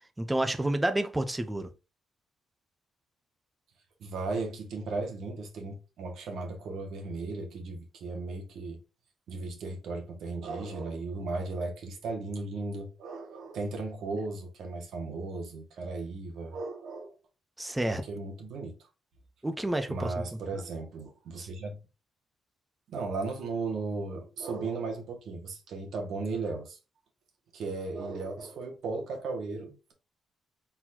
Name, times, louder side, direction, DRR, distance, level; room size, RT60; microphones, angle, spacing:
voice 1, 0.2-1.7 17.6-18.0 19.4-20.1 21.4-21.5, right 1 dB, 10° right, 0.6 m, -29 dB
voice 2, 4.0-8.8 9.3-17.1 17.8-18.8 19.9-21.8 22.9-26.8 27.5-29.9, right 3 dB, 60° right, 1.7 m, -36 dB
4.3 x 4.1 x 2.8 m
cardioid pair, 170°, 0 cm